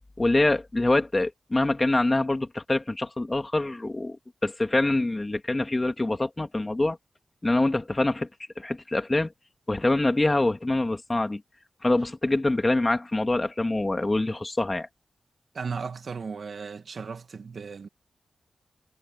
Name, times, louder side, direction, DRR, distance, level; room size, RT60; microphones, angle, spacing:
voice 1, 0.2-4.2 4.4-7.0 7.4-8.3 8.6-9.3 9.7-11.4 11.8-14.9, left 2 dB, 25° left, 3.0 m, -25 dB
voice 2, 15.5-17.9, right 5 dB, 65° right, 1.6 m, -36 dB
cardioid pair, 65°, 0 cm